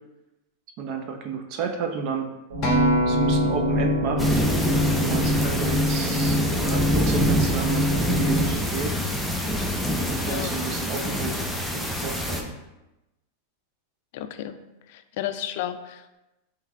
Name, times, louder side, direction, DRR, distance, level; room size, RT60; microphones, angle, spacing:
voice 1, 0.8-2.3 3.1-4.4 4.9-9.0 10.0-12.5, right 5 dB, 45° right, 5 dB, 0.6 m, -32 dB
sound 1, 2.5-8.5, left 1 dB, 90° right, 1.1 m, -25 dB
Acoustic guitar, 2.6-7.0 7.7-7.8, right 1 dB, 40° left, 1.0 m, -27 dB
sound 2, 4.2-12.4, equal, ahead, 0.5 m, -26 dB
voice 2, 14.1-14.5 14.9-16.2, left 11 dB, 60° left, 10 dB, 0.3 m, -33 dB
3.6 x 3.1 x 3.4 m, 0.98 s
supercardioid pair, 135°, 0 cm